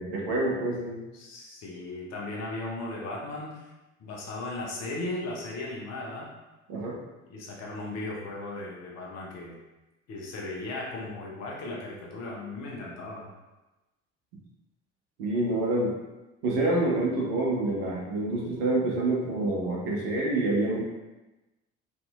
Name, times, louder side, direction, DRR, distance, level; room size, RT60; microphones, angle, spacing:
voice 1, 0.0-1.0 6.7-7.0 15.2-15.9 16.4-20.8, right 2 dB, 60° right, -4 dB, 0.9 m, -27 dB
voice 2, 1.1-3.7 4.0-6.3 7.3-9.6 10.1-13.3, left 2 dB, 45° left, -3 dB, 0.8 m, -36 dB
2.8 x 2.6 x 2.3 m, 1.1 s
figure-of-eight pair, 55°, 36 cm